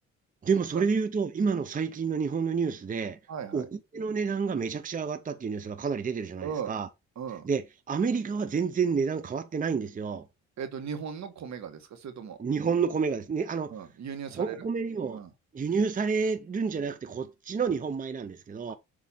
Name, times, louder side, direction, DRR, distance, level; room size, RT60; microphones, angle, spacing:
voice 1, 0.4-3.2 3.5-6.9 7.4-10.3 12.4-13.8 14.3-15.2 15.5-18.8, right 5 dB, 25° right, 0.7 m, -29 dB
voice 2, 3.3-3.6 6.4-6.7 7.1-7.5 10.6-12.4 13.7-14.6 15.1-15.3, right 7 dB, 65° right, 1.7 m, -37 dB
7.5 x 3.0 x 5.5 m
cardioid pair, 90°, 30 cm